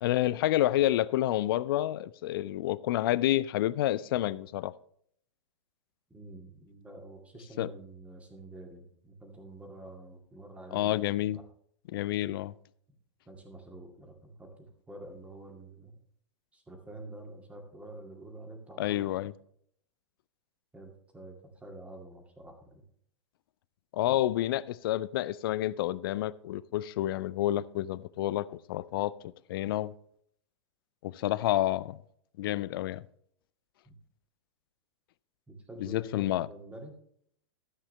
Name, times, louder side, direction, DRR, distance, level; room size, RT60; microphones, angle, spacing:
voice 1, 0.0-4.7 7.6-7.7 10.7-11.4 11.9-12.5 18.8-19.3 23.9-29.1 29.5-29.9 31.0-32.0 32.4-33.0 35.8-36.5, left 14 dB, 50° left, 0.4 m, -29 dB
voice 2, 6.1-11.0 11.3-11.4 13.3-16.0 16.5-19.3 20.7-22.8 33.9-34.0 35.5-37.0, right 1 dB, 10° right, 2.2 m, -48 dB
13.0 x 8.3 x 3.2 m
figure-of-eight pair, 100°, 15 cm